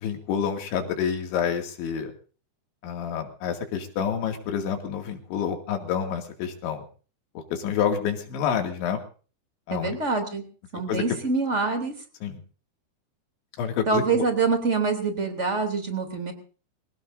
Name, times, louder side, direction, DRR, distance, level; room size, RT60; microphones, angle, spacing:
voice 1, 0.0-2.1 2.8-6.9 7.5-9.0 9.7-10.0 10.9-11.0 12.2-12.4 13.6-14.2, left 8 dB, 80° left, 3 dB, 4.7 m, -28 dB
voice 2, 9.7-10.4 10.7-11.9 13.9-16.3, right 4 dB, 20° right, 5 dB, 2.5 m, -25 dB
25.5 x 17.5 x 2.7 m, 0.39 s
omnidirectional pair, 5.3 m